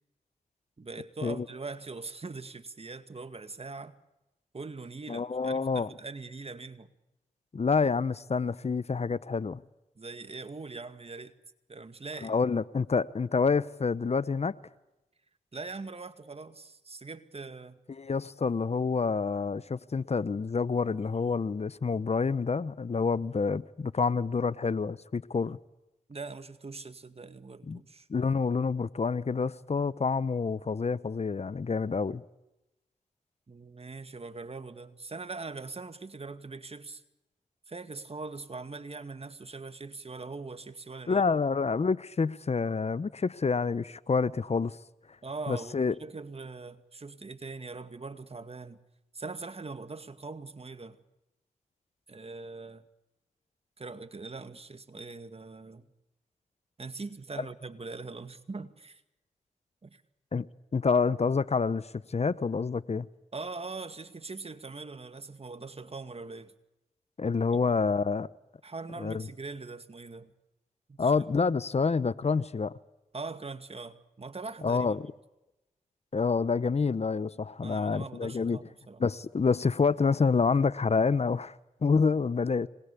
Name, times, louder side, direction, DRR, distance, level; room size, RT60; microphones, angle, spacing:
voice 1, 0.8-4.0 4.5-6.9 10.0-11.3 11.7-12.3 15.5-17.8 26.1-28.1 33.5-37.0 37.7-41.2 45.2-48.8 49.1-51.0 52.1-52.8 53.8-55.9 56.8-59.0 59.8-60.0 63.3-66.5 68.6-70.3 70.9-71.2 73.1-75.0 77.6-79.0, right 3 dB, 45° right, 2.1 m, -42 dB
voice 2, 5.1-5.9 7.5-9.6 12.2-14.5 17.9-25.6 27.7-27.8 28.1-32.2 41.1-44.8 45.5-45.9 57.4-57.5 60.3-60.5 60.7-63.1 67.2-68.3 69.0-69.3 71.0-72.7 74.6-75.1 76.1-78.6 79.0-82.7, left 5 dB, 45° left, 0.9 m, -28 dB
26.0 x 21.0 x 8.4 m
cardioid pair, 45°, 15 cm